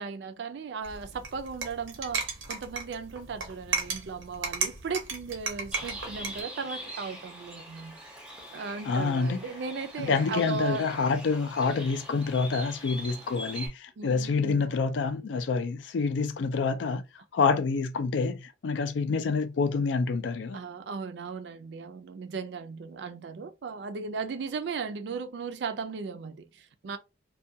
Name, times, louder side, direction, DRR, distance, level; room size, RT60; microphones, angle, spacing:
voice 1, 0.0-8.0 8.5-11.0 14.0-14.7 20.5-27.0, right 5 dB, 65° right, 0.4 m, -37 dB
sound 1, 0.8-6.4, right 5 dB, 90° right, 0.8 m, -35 dB
Bird, 5.7-13.7, right 1 dB, 5° right, 0.6 m, -43 dB
voice 2, 8.9-9.4 10.0-17.0 17.3-20.6, left 4 dB, 75° left, 0.4 m, -27 dB
2.3 x 2.2 x 2.7 m
head